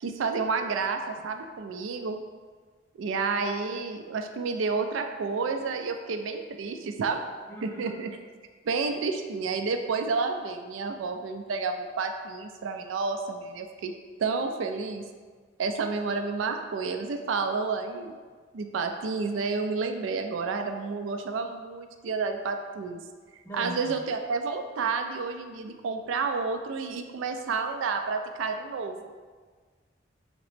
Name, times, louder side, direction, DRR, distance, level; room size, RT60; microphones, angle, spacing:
voice 1, 0.0-2.2 3.0-7.2 7.6-8.1 8.7-13.9 14.2-15.0 15.6-18.1 18.5-23.0 23.5-29.1, right 4 dB, 80° right, 6 dB, 0.4 m, -30 dB
voice 2, 7.5-8.0 23.4-24.0, equal, 15° left, -5 dB, 0.7 m, -40 dB
5.2 x 2.9 x 3.2 m, 1.5 s
head